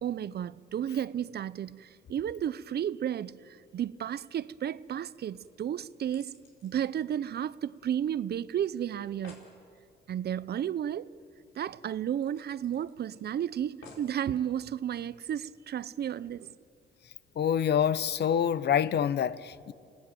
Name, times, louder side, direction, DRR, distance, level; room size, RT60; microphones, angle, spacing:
voice 1, 0.0-6.3 6.6-9.4 10.1-11.1 11.6-16.5, right 10 dB, 55° right, 0.7 m, -33 dB
sound 1, 5.4-8.0 8.3-8.4 8.7-8.8 9.0-9.5 11.1-11.2 11.5-11.6 12.2-13.2 13.8-14.2 14.9-15.0, left 3 dB, 80° left, 4.6 m, -55 dB
voice 2, 17.4-19.7, left 8 dB, 55° left, 0.8 m, -26 dB
27.0 x 18.0 x 9.0 m
cardioid pair, 90°, 20 cm